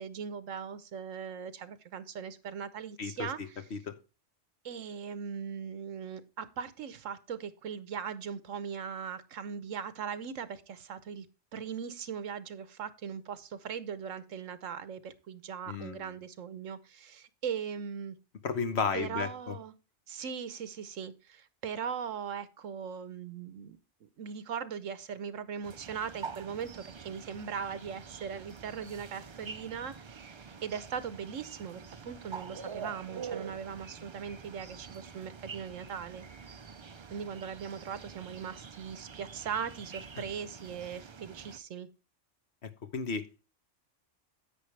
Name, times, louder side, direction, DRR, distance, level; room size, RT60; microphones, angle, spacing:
voice 1, 0.0-3.6 4.6-11.3 11.5-18.1 18.9-19.7 20.1-23.8 24.2-36.2 37.1-41.9, right 7 dB, 85° right, 1.3 m, -39 dB
voice 2, 3.0-4.0 15.7-16.1 18.4-19.6 40.2-40.3 42.6-43.5, left 5 dB, 60° left, 1.2 m, -34 dB
sound 1, 25.6-41.6, right 6 dB, 45° right, 0.3 m, -46 dB
10.0 x 8.5 x 3.2 m
omnidirectional pair, 1.3 m